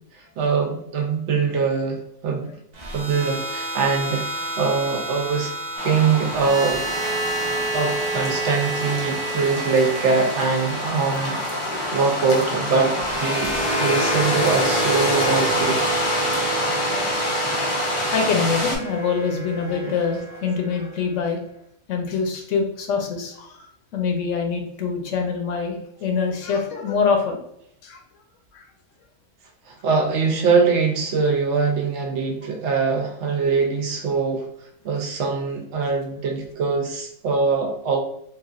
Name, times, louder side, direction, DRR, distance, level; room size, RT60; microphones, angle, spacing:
voice 1, 0.1-2.5 2.9-5.5 5.8-6.8 7.7-11.4 11.9-15.8 19.8-19.9 29.7-34.5 34.8-38.0, right 4 dB, 70° right, 2 dB, 0.9 m, -23 dB
sound 1, 2.7-20.9, right 2 dB, 50° right, 0.5 m, -29 dB
sound 2, 5.8-18.8, left 1 dB, 35° left, 0.5 m, -27 dB
voice 2, 18.1-21.4 21.9-23.6 23.9-27.4 27.8-28.0 28.5-28.6, left 5 dB, 80° left, 3 dB, 1.0 m, -24 dB
3.1 x 2.5 x 2.4 m, 0.72 s
omnidirectional pair, 1.3 m